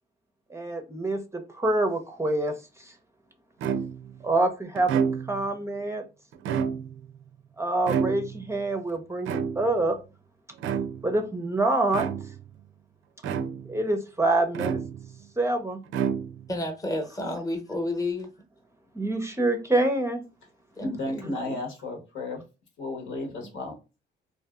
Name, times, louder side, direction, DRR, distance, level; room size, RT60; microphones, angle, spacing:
voice 1, 0.5-3.0 4.2-6.0 7.6-10.0 11.0-12.3 13.7-14.8 15.4-15.8 18.9-20.2, right 2 dB, 15° right, 0.5 m, -26 dB
sound 1, 3.6-4.2 4.7-5.5 6.3-7.1 7.9-8.5 9.2-9.9 10.6-11.1 11.9-12.5 13.2-13.8 14.5-15.2 15.9-16.6, right 7 dB, 80° right, 0.4 m, -29 dB
voice 2, 16.5-18.3 20.8-21.6, left 1 dB, 15° left, 0.9 m, -31 dB
voice 3, 20.8-22.4 22.8-23.7, left 2 dB, 75° left, 1.2 m, -33 dB
2.6 x 2.5 x 2.3 m
cardioid pair, 90°, 20 cm